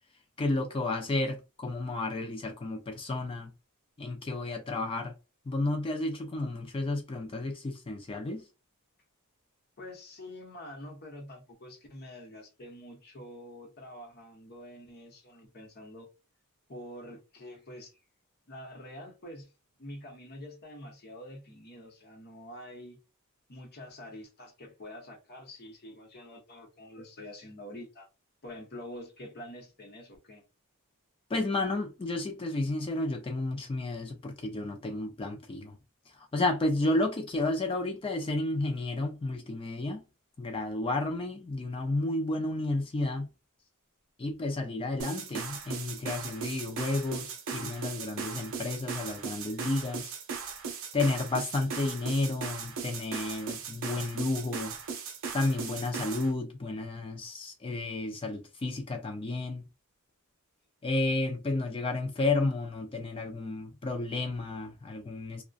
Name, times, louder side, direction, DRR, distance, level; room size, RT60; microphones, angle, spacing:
voice 1, 0.4-3.5 4.0-5.1 5.5-8.4 31.3-35.8 36.1-40.0 40.4-43.3 44.2-50.1 50.9-54.8 55.3-59.6 60.8-65.4, left 2 dB, 25° left, 0.4 m, -32 dB
voice 2, 9.8-16.1 16.7-17.9 18.5-19.5 19.8-23.0 23.5-28.1 28.4-30.4, left 1 dB, 45° left, 0.8 m, -46 dB
sound 1, 45.0-56.3, right 5 dB, 60° right, 0.6 m, -38 dB
2.5 x 2.1 x 2.3 m
head